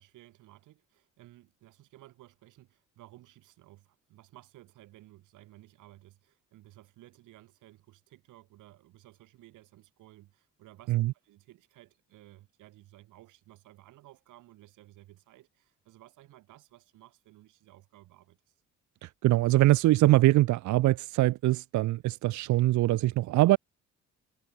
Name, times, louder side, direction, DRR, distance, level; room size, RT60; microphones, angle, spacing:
voice 1, 0.0-18.6, right 16 dB, 90° right, 2.7 m, -56 dB
voice 2, 19.0-23.6, right 17 dB, 70° right, 0.5 m, -23 dB
cardioid pair, 90°, 30 cm